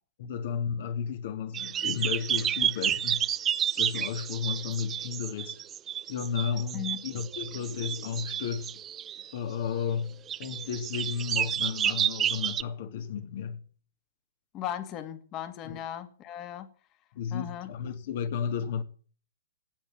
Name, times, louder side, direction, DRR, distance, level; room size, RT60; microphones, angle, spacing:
voice 1, 0.2-3.3 3.8-5.6 6.1-8.8 9.3-13.6 15.6-15.8 17.1-18.8, left 7 dB, 55° left, 2.8 m, -33 dB
sound 1, 1.5-9.3 10.3-12.6, right 10 dB, 20° right, 0.7 m, -30 dB
voice 2, 14.5-16.7 17.3-17.7, left 10 dB, 30° left, 2.3 m, -37 dB
15.5 x 9.3 x 9.0 m
hypercardioid pair, 135°, 0 cm